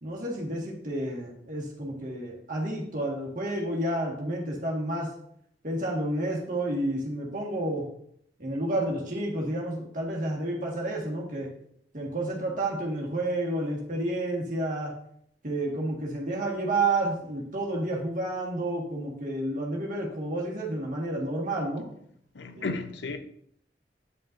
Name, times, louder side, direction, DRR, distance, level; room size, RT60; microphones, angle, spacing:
voice 1, 0.0-5.1 5.6-7.8 8.4-11.5 11.9-14.9 15.4-21.9 22.5-22.7, right 1 dB, 45° right, 1.7 m, -30 dB
voice 2, 22.3-23.2, left 3 dB, 80° left, 0.7 m, -33 dB
9.4 x 5.6 x 2.6 m
head